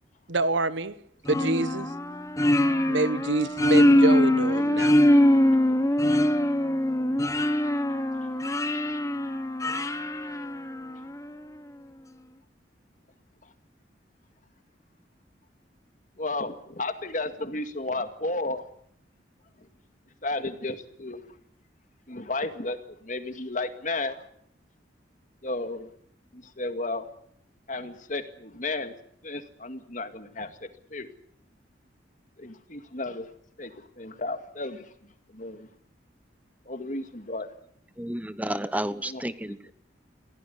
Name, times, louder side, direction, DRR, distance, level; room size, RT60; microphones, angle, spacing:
voice 1, 0.3-1.0 1.3-1.9 2.9-5.0, right 2 dB, 80° right, 1.3 m, -26 dB
sound 1, 1.3-11.1, left 1 dB, 15° left, 1.1 m, -23 dB
voice 2, 16.2-18.7 19.6-19.7 20.2-21.4 22.1-24.3 25.4-25.9 26.3-27.1 27.7-28.9 29.2-31.1 32.4-33.3 33.6-34.9 35.3-35.7 36.7-37.5 38.9-39.7, left 2 dB, 45° left, 2.1 m, -33 dB
voice 3, 38.0-39.6, right 1 dB, 10° right, 0.9 m, -31 dB
24.5 x 16.5 x 9.5 m
head